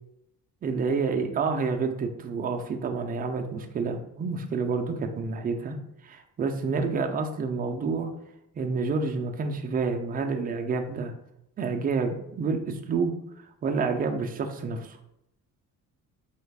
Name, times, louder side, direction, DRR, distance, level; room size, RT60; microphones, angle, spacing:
voice 1, 0.6-5.8 6.0-8.1 8.5-11.1 11.6-13.1 13.6-15.0, right 4 dB, 25° right, 5 dB, 0.4 m, -28 dB
3.1 x 2.3 x 3.3 m, 0.80 s
cardioid pair, 120°, 33 cm